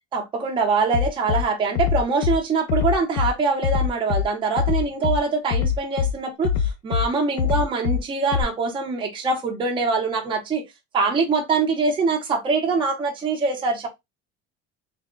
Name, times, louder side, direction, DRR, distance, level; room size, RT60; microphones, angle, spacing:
voice 1, 0.1-10.6 10.9-13.9, right 4 dB, 15° right, 0.7 m, -23 dB
Bass drum, 0.9-1.4 1.7-2.4 2.7-3.3 3.6-4.2 4.6-5.2 5.5-6.1 6.4-7.0 7.4-8.0 8.3-8.4, left 7 dB, 50° left, 0.5 m, -22 dB
3.4 x 2.1 x 3.6 m
cardioid pair, 180°, 29 cm